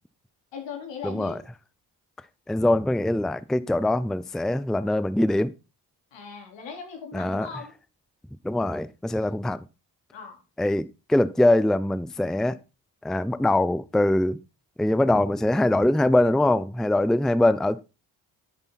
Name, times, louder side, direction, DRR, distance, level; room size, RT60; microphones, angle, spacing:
voice 1, 0.5-1.4 6.1-7.7 9.1-9.3 10.1-10.4, left 6 dB, 75° left, 4.1 m, -39 dB
voice 2, 1.0-1.4 2.5-5.5 7.1-7.5 8.4-9.6 10.6-12.6 13.0-14.4 14.8-17.8, left 1 dB, ahead, 0.6 m, -23 dB
10.0 x 8.9 x 4.1 m
supercardioid pair, 60°, 44 cm